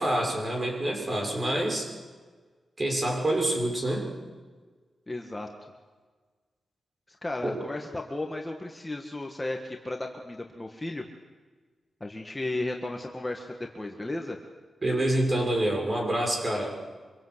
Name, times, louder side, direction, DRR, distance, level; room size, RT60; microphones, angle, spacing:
voice 1, 0.0-1.9 2.8-4.1 7.4-7.6 14.8-16.8, right 1 dB, 25° right, 1 dB, 6.5 m, -27 dB
voice 2, 5.1-5.5 7.1-11.0 12.0-14.4, left 2 dB, 15° left, 2 dB, 1.9 m, -34 dB
25.5 x 25.0 x 8.2 m, 1.4 s
wide cardioid pair, 140°, 0 cm